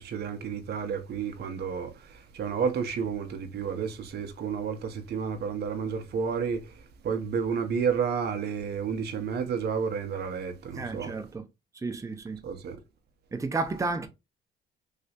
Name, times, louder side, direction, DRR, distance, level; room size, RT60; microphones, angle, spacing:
voice 1, 0.0-6.7 7.0-11.1 12.4-12.8, right 6 dB, 55° right, 0.7 m, -31 dB
voice 2, 10.7-11.5 11.8-12.4 13.3-14.1, right 3 dB, 15° right, 0.6 m, -32 dB
3.2 x 2.8 x 2.8 m
cardioid pair, 90°, 20 cm